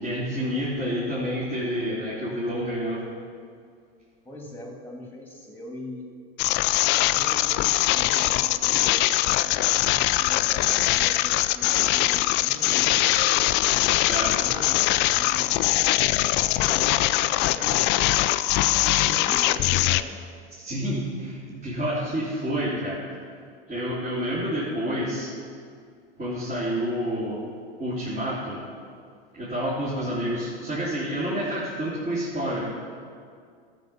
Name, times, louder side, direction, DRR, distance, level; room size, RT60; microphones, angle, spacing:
voice 1, 0.0-3.0 14.1-14.4 20.6-23.0 23.7-25.3 26.2-27.4 27.8-28.6 29.3-32.6, equal, 25° right, -10 dB, 3.4 m, -28 dB
voice 2, 4.2-6.1 7.1-13.5 14.2-15.6 16.3-18.2 18.8-20.2 22.1-22.2 23.4-23.5 24.3-24.4, left 1 dB, 5° left, 1 dB, 2.3 m, -41 dB
sound 1, 6.4-20.0, left 16 dB, 35° left, 0.4 m, -22 dB
13.0 x 7.1 x 5.9 m, 2.1 s
hypercardioid pair, 100°, 30 cm